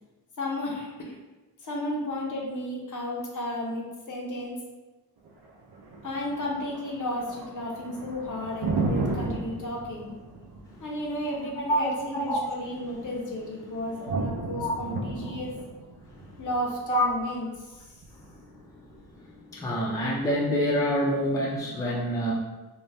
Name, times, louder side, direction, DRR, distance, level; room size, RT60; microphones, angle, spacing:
voice 1, 0.4-1.2 1.6-4.5 6.0-10.1 10.8-15.6 16.4-17.9, left 1 dB, 55° left, -2 dB, 0.7 m, -33 dB
Thunder, 5.2-19.3, right 3 dB, 75° right, 0.5 m, -35 dB
voice 2, 11.7-12.4 14.1-14.2 14.6-14.7 16.1-16.2 16.9-17.1 18.3-18.9 19.2-22.3, equal, 10° left, -5 dB, 0.4 m, -27 dB
2.6 x 2.1 x 3.2 m, 1.2 s
wide cardioid pair, 110°, 38 cm